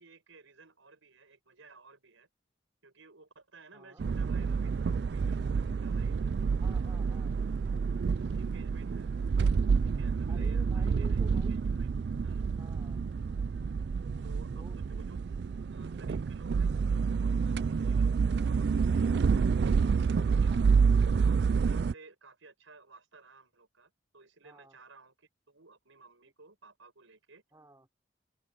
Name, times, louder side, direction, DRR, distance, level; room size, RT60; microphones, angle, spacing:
voice 1, 0.0-2.3 2.8-4.7 5.0-6.2 8.2-9.1 9.8-11.9 12.2-12.4 14.2-15.2 15.7-19.6 20.2-20.5 21.1-27.4, right 3 dB, 85° right, 6.4 m, -57 dB
sound 1, 4.0-21.9, right 5 dB, 55° right, 0.3 m, -28 dB
voice 2, 6.6-7.4 10.3-11.5 12.6-13.0 14.5-14.8 20.5-20.6 24.4-24.8 27.5-27.9, right 1 dB, 15° right, 3.4 m, -52 dB
open air
head